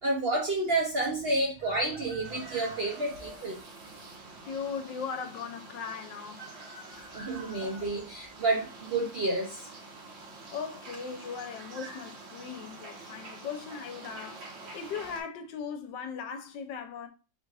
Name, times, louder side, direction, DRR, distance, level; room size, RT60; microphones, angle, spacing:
voice 1, 0.0-3.6 7.1-9.7, right 2 dB, 65° right, 0.5 m, -30 dB
Chicken rooster, 1.6-3.4 6.1-7.9, right 1 dB, 40° right, 1.3 m, -49 dB
sound 1, 2.2-15.2, right 3 dB, 85° right, 1.8 m, -47 dB
voice 2, 4.4-6.5 10.5-14.4 14.7-17.1, left 6 dB, 75° left, 1.3 m, -38 dB
3.9 x 2.4 x 4.7 m
omnidirectional pair, 2.0 m